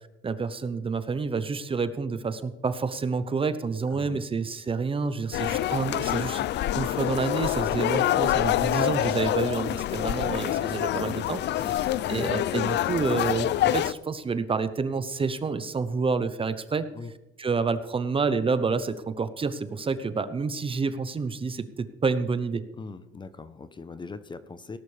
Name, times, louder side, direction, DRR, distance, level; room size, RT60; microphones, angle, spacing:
voice 1, 0.2-6.4 6.7-11.4 11.7-11.8 12.1-16.8 17.4-22.6, right 4 dB, 25° right, 12 dB, 0.8 m, -28 dB
voice 2, 3.9-4.2 11.6-11.9 16.9-17.1 22.8-24.8, left 4 dB, 25° left, 13 dB, 0.7 m, -41 dB
sound 1, 5.3-13.9, left 13 dB, 60° left, 0.4 m, -26 dB
18.0 x 11.5 x 3.4 m, 0.99 s
cardioid pair, 115°, 21 cm